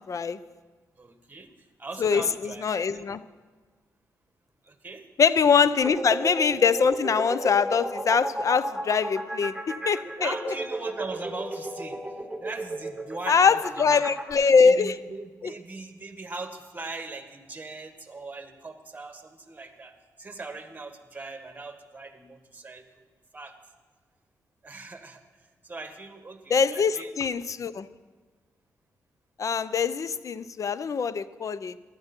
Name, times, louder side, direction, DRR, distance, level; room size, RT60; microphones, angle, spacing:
voice 1, 0.1-0.4 2.0-3.2 5.2-10.3 13.3-14.9 15.4-15.5 26.5-27.9 29.4-31.7, left 6 dB, 50° left, 16 dB, 0.6 m, -23 dB
voice 2, 1.0-1.5 1.8-3.1 4.6-5.0 5.7-5.9 10.2-12.0 12.4-13.6 14.0-14.1 14.6-23.5 24.6-25.2 25.6-27.3, right 3 dB, 25° right, 7 dB, 1.7 m, -40 dB
sound 1, 5.8-14.3, right 1 dB, ahead, 4.1 m, -33 dB
15.5 x 11.5 x 4.5 m, 1.4 s
supercardioid pair, 60°, 7 cm